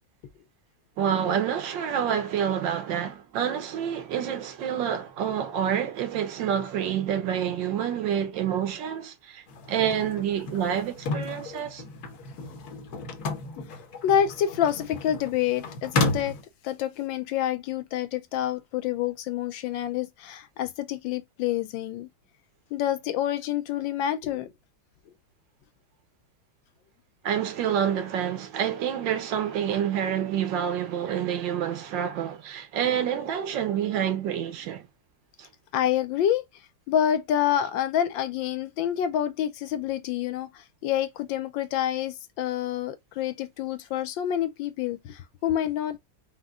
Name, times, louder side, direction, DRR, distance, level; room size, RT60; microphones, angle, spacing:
voice 1, 1.0-11.8 27.2-34.9, right 9 dB, 75° right, 1.6 m, -28 dB
sound 1, 9.5-16.4, left 3 dB, 60° left, 1.4 m, -33 dB
voice 2, 14.0-16.4 16.6-22.1 22.7-24.5 35.7-36.4 36.9-46.0, left 10 dB, 80° left, 1.4 m, -27 dB
5.1 x 2.2 x 3.6 m
omnidirectional pair, 2.1 m